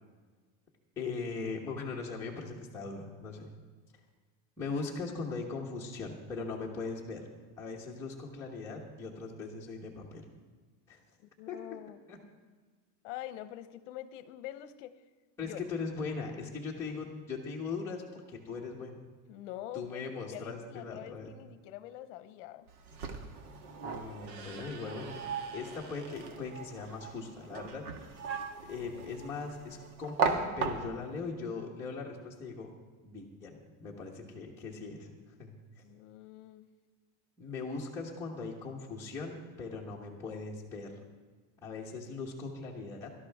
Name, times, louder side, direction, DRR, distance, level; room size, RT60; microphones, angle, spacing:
voice 1, 1.0-3.5 4.6-7.2 7.6-10.2 10.9-11.0 11.5-11.6 12.1-12.2 15.4-19.0 19.7-21.3 23.8-25.1 25.5-27.8 28.6-32.7 33.0-35.1 35.4-35.5 37.4-40.9 41.6-43.1, left 4 dB, 5° left, -5 dB, 1.2 m, -39 dB
voice 2, 11.4-12.0 13.0-14.9 15.4-15.6 19.3-20.0 20.3-22.7 35.8-36.7, left 13 dB, 60° left, 12 dB, 0.9 m, -45 dB
sound 1, 22.7-31.2, right 5 dB, 90° right, 1.8 m, -37 dB
17.5 x 12.5 x 3.5 m, 1.4 s
supercardioid pair, 175°, 43 cm